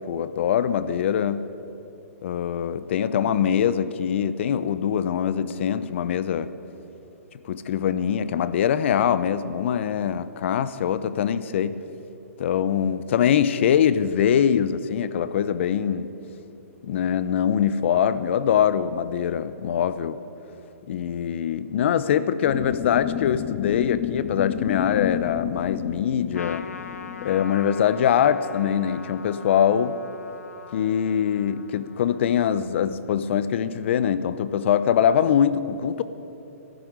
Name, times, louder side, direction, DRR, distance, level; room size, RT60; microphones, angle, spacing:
voice 1, 0.1-1.5 2.2-6.5 7.4-11.8 12.4-16.1 16.8-20.2 20.9-26.7 27.2-30.0 30.7-36.0, left 8 dB, 55° left, 15 dB, 0.8 m, -23 dB
sound 1, 22.4-27.4, left 14 dB, 30° left, 0.5 m, -31 dB
Trumpet, 26.3-33.0, left 5 dB, 90° left, 0.9 m, -42 dB
13.0 x 11.5 x 9.5 m, 2.9 s
hypercardioid pair, 145°, 8 cm